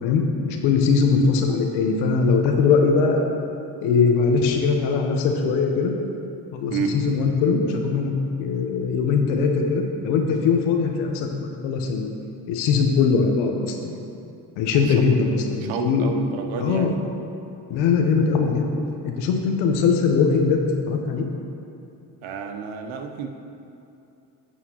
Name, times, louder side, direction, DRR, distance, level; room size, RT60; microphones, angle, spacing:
voice 1, 0.0-3.3 3.8-5.9 6.5-8.1 8.4-11.3 11.6-12.1 12.5-13.9 14.6-16.1 16.6-16.9 17.7-18.7 19.0-20.6 20.9-21.3, left 5 dB, 85° left, 3 dB, 1.0 m, -21 dB
voice 2, 14.7-15.2 15.6-17.0 22.2-23.3, right 5 dB, 75° right, 5 dB, 0.8 m, -30 dB
10.0 x 7.6 x 2.9 m, 2.7 s
supercardioid pair, 60°, 46 cm